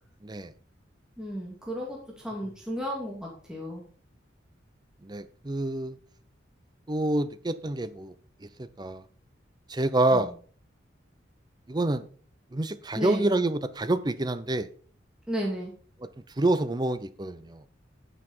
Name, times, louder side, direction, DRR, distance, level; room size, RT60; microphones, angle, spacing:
voice 1, 1.2-3.9 10.1-10.3 12.9-13.4 15.3-15.7, equal, 5° right, -3 dB, 2.5 m, -33 dB
voice 2, 5.0-6.0 6.9-8.1 8.6-9.0 9.7-10.3 11.7-12.0 12.5-14.7 16.0-16.1 16.4-17.6, right 2 dB, 20° right, 14 dB, 0.6 m, -27 dB
10.0 x 9.5 x 4.4 m, 0.42 s
head